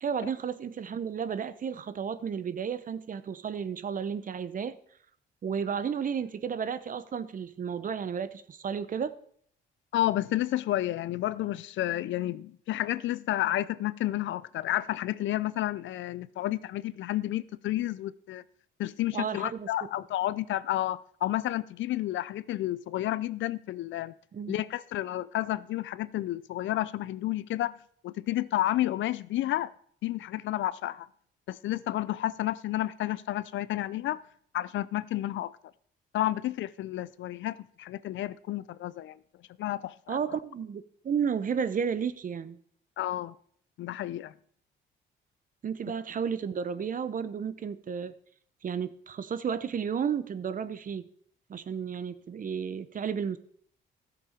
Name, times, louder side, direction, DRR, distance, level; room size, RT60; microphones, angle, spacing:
voice 1, 0.0-4.8 5.4-9.1 19.1-19.9 24.3-24.6 40.1-42.6 45.6-48.1 48.6-51.1 51.5-53.4, right 7 dB, 45° right, 0.8 m, -32 dB
voice 2, 9.9-18.4 18.8-24.1 24.5-27.8 28.0-29.7 30.0-31.1 31.5-34.2 34.5-35.5 36.1-39.2 39.6-40.2 43.0-43.4 43.8-44.3, left 14 dB, 70° left, 0.5 m, -31 dB
13.5 x 6.9 x 5.0 m
cardioid pair, 90°, 20 cm